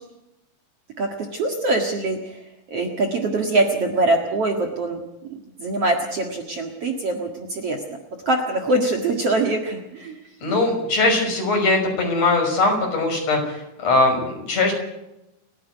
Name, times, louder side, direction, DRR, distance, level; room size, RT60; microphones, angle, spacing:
voice 1, 1.0-2.4 2.7-5.0 5.3-8.0 8.3-10.2, right 2 dB, 50° right, 3 dB, 2.2 m, -23 dB
voice 2, 10.4-14.7, left 2 dB, 40° left, 2 dB, 6.7 m, -20 dB
29.5 x 10.5 x 9.3 m, 0.90 s
omnidirectional pair, 4.6 m